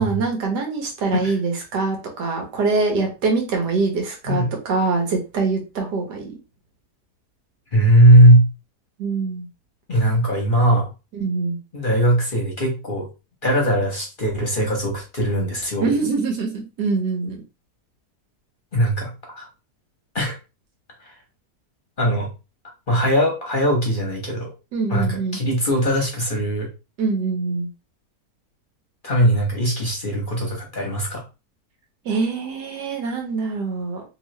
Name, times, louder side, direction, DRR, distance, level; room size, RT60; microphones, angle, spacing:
voice 1, 0.0-6.4 9.0-9.5 11.1-11.6 15.8-17.4 24.7-25.4 27.0-27.7 32.0-34.0, right 4 dB, 85° right, 2 dB, 1.7 m, -24 dB
voice 2, 7.7-8.5 9.9-10.8 11.7-13.1 13.4-15.9 18.7-19.5 20.1-20.4 21.0-21.2 22.0-22.3 22.9-24.5 24.9-26.7 29.0-31.2, right 1 dB, 40° left, 0 dB, 0.9 m, -19 dB
3.1 x 3.0 x 3.1 m, 0.29 s
omnidirectional pair, 1.7 m